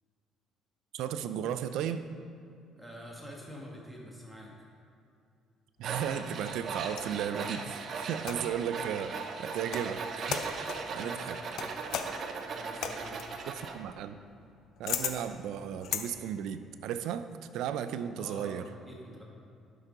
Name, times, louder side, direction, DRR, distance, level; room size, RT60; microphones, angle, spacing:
voice 1, 0.9-2.0 5.8-9.1 9.4-10.5 10.9-11.4 13.5-14.2 14.8-17.3 17.5-18.7, right 9 dB, 75° right, 11 dB, 0.4 m, -35 dB
voice 2, 2.7-4.5 10.8-11.3 12.4-13.2 18.2-19.2, equal, ahead, -3 dB, 1.7 m, -47 dB
Tools, 5.8-13.8, right 5 dB, 50° right, 0.8 m, -38 dB
sound 1, 5.9-7.2 8.2-8.7 9.5-9.9 10.3-10.9 11.6-16.1, left 8 dB, 65° left, 0.6 m, -38 dB
11.0 x 5.9 x 3.9 m, 2.5 s
cardioid pair, 105°, 0 cm